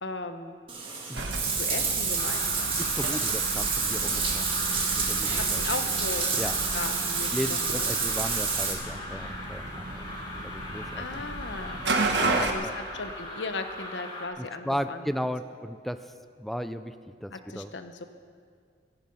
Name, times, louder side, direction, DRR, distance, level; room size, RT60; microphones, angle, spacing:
voice 1, 0.0-0.6 1.4-2.8 5.4-6.3 6.7-7.9 11.0-15.1 17.3-18.0, left 3 dB, 85° left, 8 dB, 1.1 m, -37 dB
Bathtub (filling or washing), 0.7-8.7, right 5 dB, 30° right, 2.2 m, -28 dB
sound 1, 1.1-12.5, right 3 dB, 70° right, 1.4 m, -34 dB
sound 2, 2.1-14.3, left 1 dB, 25° left, 3.3 m, -40 dB
voice 2, 2.8-4.5 4.7-5.6 6.4-6.5 7.3-10.1 10.4-11.2 12.2-12.7 14.4-16.1 16.4-17.7, equal, ahead, 10 dB, 0.4 m, -35 dB
16.5 x 15.0 x 5.6 m, 2.1 s
head